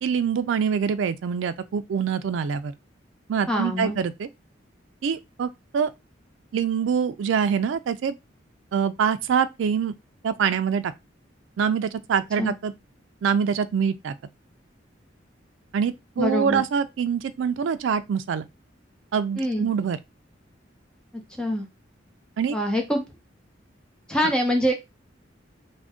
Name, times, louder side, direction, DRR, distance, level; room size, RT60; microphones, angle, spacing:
voice 1, 0.0-2.7 3.3-4.3 5.0-5.9 6.5-8.1 8.7-9.9 10.2-10.9 11.6-12.7 13.2-14.1 15.7-18.5 19.1-20.0 22.4-22.6, right 7 dB, 75° right, 0.3 m, -25 dB
voice 2, 3.5-4.0 12.4-12.6 16.2-16.6 19.4-19.7 21.4-21.7 22.5-23.0 24.1-24.7, equal, 5° left, 0.7 m, -24 dB
2.5 x 2.1 x 3.5 m
head